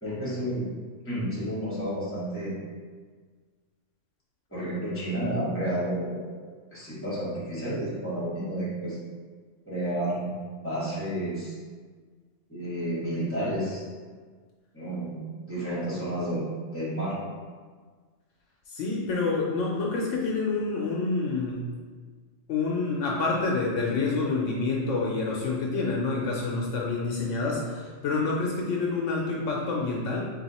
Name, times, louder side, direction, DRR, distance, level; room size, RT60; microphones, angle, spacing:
voice 1, 0.0-0.7 1.0-2.5 4.5-6.4 6.7-9.0 9.6-11.5 12.5-13.8 14.7-15.2 15.5-16.4 16.7-17.2, right 1 dB, 10° left, -9 dB, 1.4 m, -31 dB
voice 2, 18.7-21.7 22.5-30.3, left 3 dB, 75° left, -2 dB, 0.9 m, -28 dB
3.4 x 2.8 x 4.1 m, 1.5 s
omnidirectional pair, 1.3 m